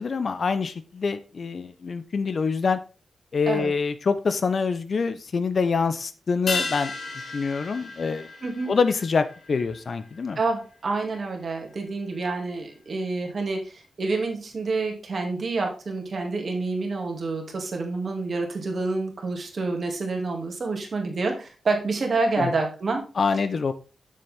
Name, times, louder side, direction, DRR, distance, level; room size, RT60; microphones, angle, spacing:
voice 1, 0.0-2.8 3.3-6.9 7.3-8.3 8.7-10.4 22.4-22.5 23.2-23.7, left 5 dB, 55° left, 12 dB, 0.8 m, -25 dB
sound 1, 6.5-11.2 11.4-11.5, left 3 dB, 70° left, 2.3 m, -35 dB
voice 2, 8.4-8.7 10.4-23.0, right 3 dB, 55° right, 2 dB, 2.4 m, -28 dB
7.5 x 6.9 x 3.6 m, 0.35 s
wide cardioid pair, 105°, 0 cm